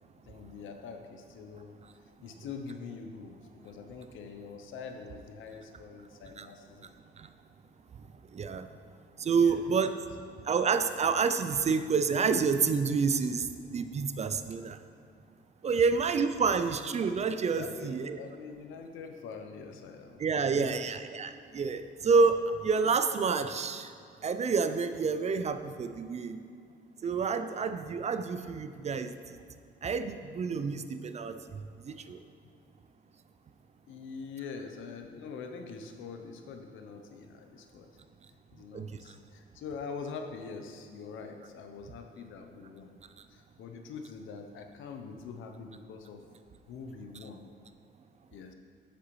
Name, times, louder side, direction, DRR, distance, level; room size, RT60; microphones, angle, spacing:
voice 1, 0.3-1.7 2.2-6.9 9.4-9.6 17.6-20.2 20.6-20.8 33.9-37.9 38.5-42.9 43.3-46.2 46.7-47.4 48.3-48.5, left 5 dB, 80° left, 5 dB, 0.7 m, -44 dB
voice 2, 8.3-8.7 9.2-9.9 10.4-13.5 13.7-14.8 15.6-18.2 20.2-23.9 24.2-26.4 27.0-29.1 29.8-31.4 31.9-32.2 38.7-38.9, right 5 dB, 35° right, 10 dB, 0.4 m, -28 dB
7.5 x 6.7 x 3.1 m, 2.3 s
cardioid pair, 90°, 20 cm